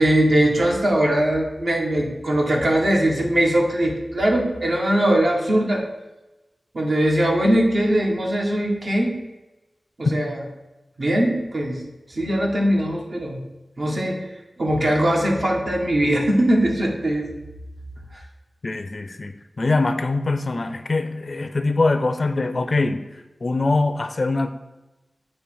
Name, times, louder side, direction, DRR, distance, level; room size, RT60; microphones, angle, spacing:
voice 1, 0.0-5.8 6.7-9.1 10.0-10.4 11.0-11.8 12.1-13.4 13.8-14.2 14.6-17.2 18.1-18.2, right 1 dB, 60° right, -1 dB, 1.6 m, -20 dB
voice 2, 18.6-23.0 23.4-24.5, left 3 dB, 50° left, 9 dB, 0.5 m, -23 dB
8.3 x 3.3 x 6.3 m, 1.0 s
wide cardioid pair, 85°, 0 cm